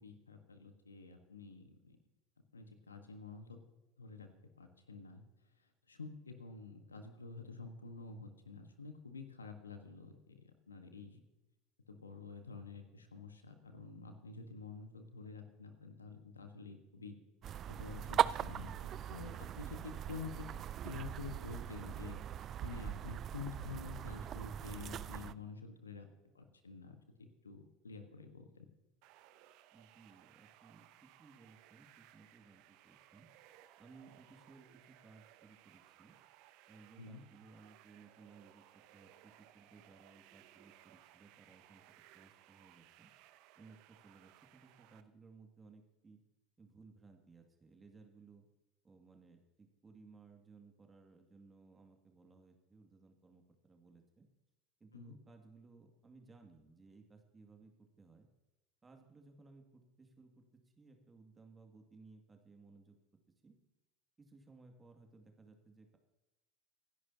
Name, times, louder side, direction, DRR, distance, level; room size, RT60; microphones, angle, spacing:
voice 1, 0.0-2.0 2.5-3.6 4.0-5.2 5.9-11.2 11.9-17.1 17.7-22.2 22.6-26.1 26.3-28.7 37.0-37.2 54.9-55.1, left 5 dB, 85° left, 7 dB, 1.4 m, -49 dB
sound 1, 17.4-25.3, right 10 dB, 40° right, 0.4 m, -39 dB
sound 2, 29.0-45.0, right 14 dB, 55° right, 0.8 m, -63 dB
voice 2, 29.7-33.3 33.8-36.1 36.7-41.8 42.1-43.1 43.6-46.2 46.6-48.4 48.8-54.3 54.8-58.3 58.8-60.4 60.8-63.0 63.4-63.6 64.2-66.0, right 4 dB, 20° right, 3 dB, 2.3 m, -60 dB
25.5 x 11.0 x 2.9 m, 1.0 s
figure-of-eight pair, 75°, 0 cm